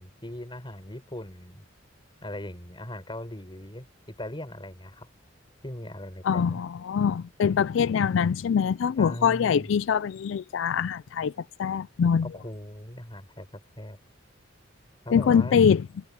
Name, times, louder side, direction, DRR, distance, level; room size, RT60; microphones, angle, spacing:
voice 1, 0.0-1.6 2.2-5.1 5.6-6.6 9.0-9.8 12.2-14.0 15.0-15.6, left 1 dB, 25° left, 5.7 m, -39 dB
voice 2, 6.2-11.3 11.6-12.3 15.1-15.9, left 7 dB, 70° left, 0.3 m, -23 dB
head